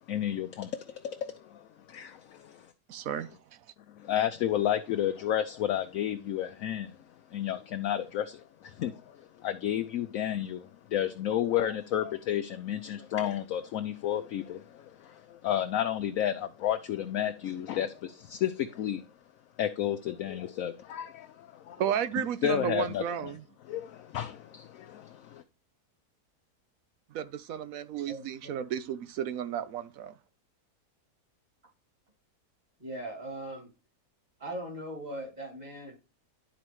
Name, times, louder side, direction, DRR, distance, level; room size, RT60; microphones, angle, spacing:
voice 1, 0.1-2.7 3.9-7.0 7.3-19.0 19.6-21.8 22.4-23.3 23.6-25.4, left 11 dB, 65° left, 0.9 m, -32 dB
voice 2, 2.9-3.6 21.8-23.4 27.1-30.1, right 9 dB, 65° right, 1.0 m, -33 dB
voice 3, 28.1-28.7 32.8-33.7 34.4-36.0, right 1 dB, 25° right, 2.6 m, -40 dB
11.5 x 4.1 x 3.0 m
omnidirectional pair, 1.7 m